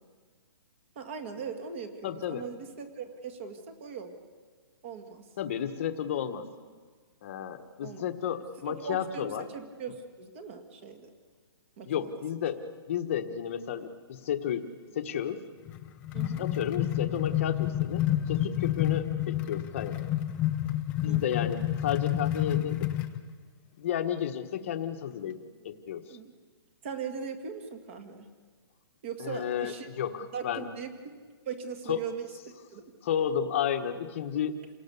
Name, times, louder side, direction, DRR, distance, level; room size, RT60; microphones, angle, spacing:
voice 1, 1.0-4.1 4.8-5.3 7.8-8.0 8.7-11.1 11.8-12.1 16.1-16.5 21.1-21.4 26.1-26.3 26.8-28.3 29.0-29.9 30.3-30.9 31.5-32.2 32.7-32.9, right 6 dB, 30° right, 7 dB, 1.9 m, -39 dB
voice 2, 2.0-2.4 5.4-6.4 7.2-9.5 11.9-12.6 12.9-14.7 14.9-15.4 16.4-20.0 21.0-22.9 23.8-25.4 25.6-26.2 29.2-30.7 31.9-32.0 33.0-34.6, left 9 dB, 30° left, 8 dB, 1.2 m, -32 dB
sound 1, 15.7-23.2, left 13 dB, 10° left, 0.5 m, -29 dB
28.0 x 18.0 x 6.9 m, 1.6 s
hypercardioid pair, 175°, 14 cm